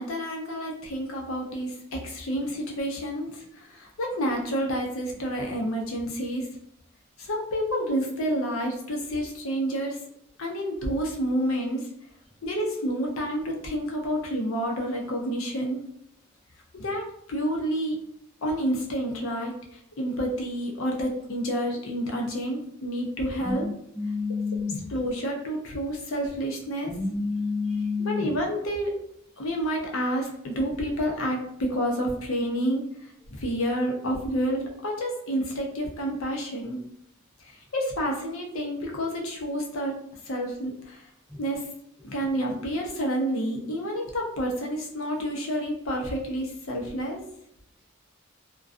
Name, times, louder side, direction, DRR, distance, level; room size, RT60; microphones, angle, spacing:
voice 1, 0.0-6.5 7.2-10.0 10.4-11.8 12.4-15.8 16.7-18.0 18.4-19.5 20.0-23.7 24.9-26.9 28.0-28.9 29.4-32.8 33.3-36.8 37.4-39.9 40.3-41.1 41.4-41.6 42.0-47.2, equal, 75° left, 0 dB, 0.6 m, -29 dB
voice 2, 23.4-24.9 26.9-28.3 41.3-41.4, left 4 dB, 5° right, -5 dB, 0.5 m, -29 dB
2.4 x 2.2 x 2.4 m, 0.75 s
head